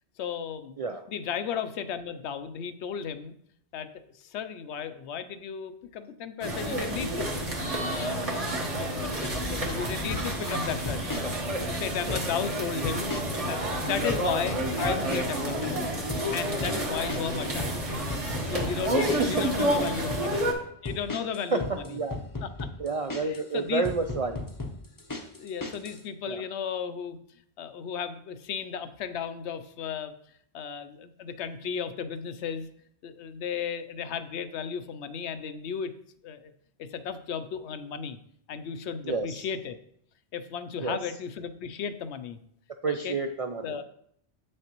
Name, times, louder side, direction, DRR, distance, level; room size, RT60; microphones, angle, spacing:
voice 1, 0.2-0.8 1.1-3.3 3.7-3.9 4.1-7.4 7.8-11.2 11.7-13.1 13.5-15.9 16.3-17.9 18.4-20.4 20.8-22.0 22.4-22.7 23.2-23.9 25.4-27.2 27.6-30.1 30.5-32.7 33.0-35.9 36.2-36.5 36.8-38.2 38.5-39.8 40.3-42.4 42.9-43.2 43.6-43.8, left 7 dB, 75° left, 11 dB, 0.8 m, -35 dB
sound 1, 6.4-20.5, right 1 dB, 30° right, 1.1 m, -29 dB
sound 2, 10.1-10.5 10.9-11.3 11.9-12.5 12.8-13.5 13.7-14.3 14.8-15.5 15.7-19.5 19.8-20.3 20.9-23.5 23.8-26.0, left 2 dB, 25° left, 0.6 m, -36 dB
voice 2, 22.8-24.4 26.3-26.4 39.0-39.4 40.8-41.0 42.8-43.8, right 4 dB, 60° right, 5 dB, 0.3 m, -29 dB
8.1 x 6.4 x 3.0 m, 0.70 s
omnidirectional pair, 1.2 m